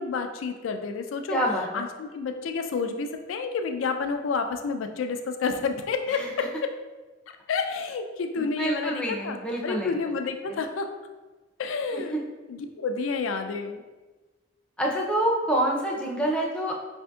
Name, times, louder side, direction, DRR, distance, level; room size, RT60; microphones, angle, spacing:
voice 1, 0.0-1.4 1.7-6.7 7.5-10.9 11.6-12.2 12.5-13.8, left 4 dB, 90° left, 6 dB, 0.4 m, -30 dB
voice 2, 1.3-1.9 6.1-6.3 8.4-10.0 10.5-10.6 11.9-12.2 14.8-16.8, right 1 dB, 5° left, -2 dB, 0.4 m, -27 dB
5.0 x 2.6 x 2.3 m, 1.3 s
head